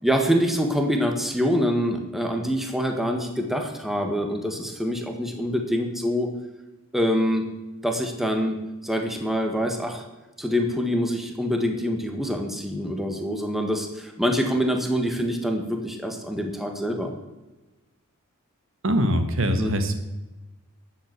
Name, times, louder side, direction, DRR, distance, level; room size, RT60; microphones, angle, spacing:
voice 1, 0.0-6.3 6.9-7.5 7.8-8.6 8.8-10.0 10.4-17.1 19.6-19.7, equal, ahead, 3 dB, 1.5 m, -25 dB
voice 2, 18.8-19.9, equal, 65° right, 7 dB, 1.6 m, -22 dB
12.0 x 8.0 x 8.1 m, 1.1 s
head